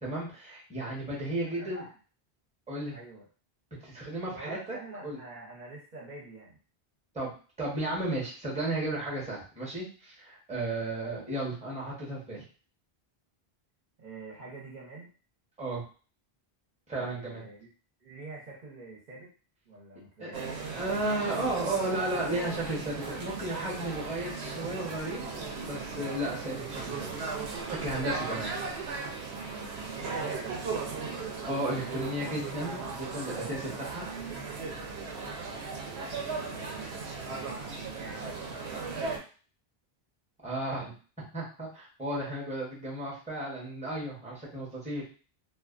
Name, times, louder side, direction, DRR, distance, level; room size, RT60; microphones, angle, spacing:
voice 1, 0.0-1.8 2.7-3.0 3.8-4.6 5.0-5.2 7.1-7.3 7.6-12.4 15.6-15.8 16.9-17.4 20.2-27.1 27.7-28.5 31.5-34.1 40.4-40.9 41.3-45.0, right 1 dB, 5° right, -4 dB, 0.8 m, -34 dB
voice 2, 1.4-1.9 2.9-3.3 4.3-6.6 10.7-10.9 14.0-15.1 16.9-17.7 18.0-19.3 19.7-20.5 28.0-28.5 29.4-31.0 35.2-39.1, right 3 dB, 50° right, -5 dB, 0.8 m, -47 dB
sound 1, 20.3-39.2, right 4 dB, 85° right, 0.8 m, -37 dB
2.4 x 2.3 x 2.4 m, 0.37 s
omnidirectional pair, 1.0 m